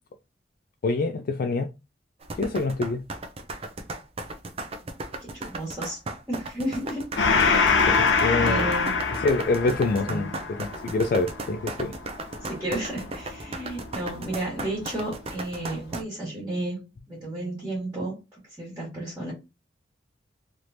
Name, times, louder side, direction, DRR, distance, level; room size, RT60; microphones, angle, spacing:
voice 1, 0.8-1.7 2.4-3.0 7.9-8.7 9.2-11.9, left 3 dB, 50° left, 0.3 m, -26 dB
sound 1, 2.2-16.0, right 2 dB, 30° right, 0.4 m, -36 dB
voice 2, 5.3-6.0 6.3-8.1 8.4-9.1 10.1-10.3 12.4-19.3, right 1 dB, 10° right, 1.5 m, -33 dB
Gong, 7.2-14.1, left 4 dB, 80° left, 0.8 m, -25 dB
3.2 x 3.0 x 2.6 m
head